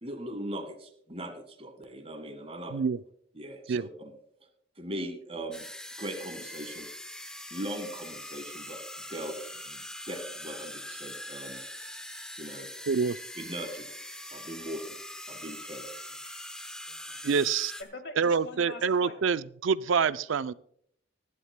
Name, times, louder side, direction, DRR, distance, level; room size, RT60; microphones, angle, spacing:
voice 1, 0.0-2.8 3.4-3.9 4.8-5.6 6.0-6.9 7.5-8.8 9.1-9.4 9.7-11.6 12.4-12.7 13.4-13.9 14.3-15.0 15.3-15.8, right 1 dB, 30° right, 7 dB, 1.7 m, -39 dB
sound 1, 5.5-17.8, left 1 dB, 5° left, 0.8 m, -42 dB
voice 2, 12.9-13.2 17.2-17.7 18.2-20.5, right 5 dB, 80° right, 15 dB, 0.4 m, -26 dB
voice 3, 16.9-17.3 17.8-19.2, left 2 dB, 65° left, 6 dB, 2.3 m, -44 dB
22.5 x 11.5 x 2.2 m, 0.67 s
head